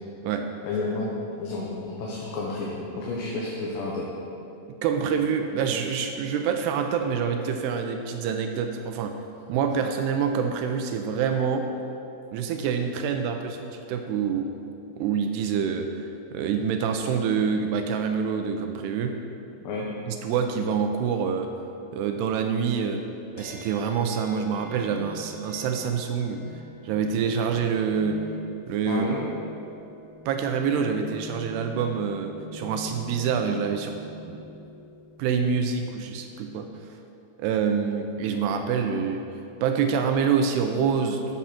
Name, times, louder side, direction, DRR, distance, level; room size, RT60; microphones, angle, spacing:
voice 1, 0.6-1.1 1.4-4.1 19.7-19.9 28.9-29.2, left 3 dB, 80° left, -4 dB, 3.4 m, -31 dB
voice 2, 4.8-9.2 9.5-11.7 12.3-14.5 15.0-19.2 20.1-21.5 21.9-23.0 23.3-26.4 26.8-28.2 28.7-29.0 30.3-34.0 34.2-34.4 35.2-36.7 37.4-39.2 39.6-41.4, right 6 dB, 85° right, 5 dB, 2.7 m, -26 dB
sound 1, 23.4-36.9, left 1 dB, 60° left, 1.0 m, -45 dB
13.5 x 7.4 x 5.9 m, 2.7 s
omnidirectional pair, 4.9 m